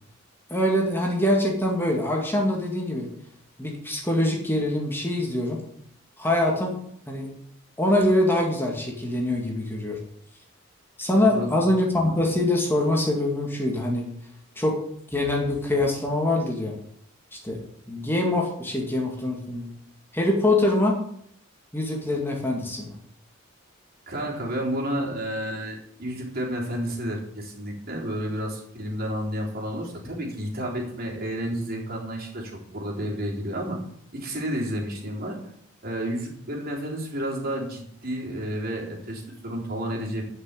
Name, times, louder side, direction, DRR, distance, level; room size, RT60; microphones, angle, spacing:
voice 1, 0.5-3.1 3.6-5.6 6.2-6.8 7.1-7.3 7.8-10.0 11.0-14.1 14.6-14.8 15.1-16.7 17.3-17.6 17.9-19.7 20.1-21.0 21.7-22.9, left 1 dB, 10° left, -1 dB, 2.2 m, -24 dB
voice 2, 11.3-11.7 24.1-33.8 34.1-35.4 35.8-40.2, equal, 50° right, -2 dB, 3.7 m, -31 dB
12.0 x 6.2 x 8.3 m, 0.68 s
head